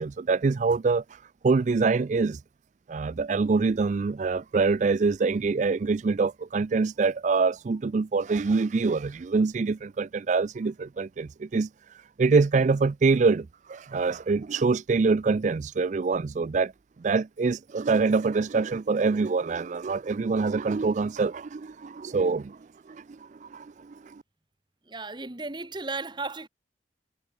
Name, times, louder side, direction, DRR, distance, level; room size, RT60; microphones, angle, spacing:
voice 1, 0.0-2.4 2.9-16.7 17.0-22.6 22.9-24.2, right 4 dB, 40° right, 0.4 m, -25 dB
voice 2, 24.8-26.5, right 3 dB, 25° right, 1.4 m, -35 dB
head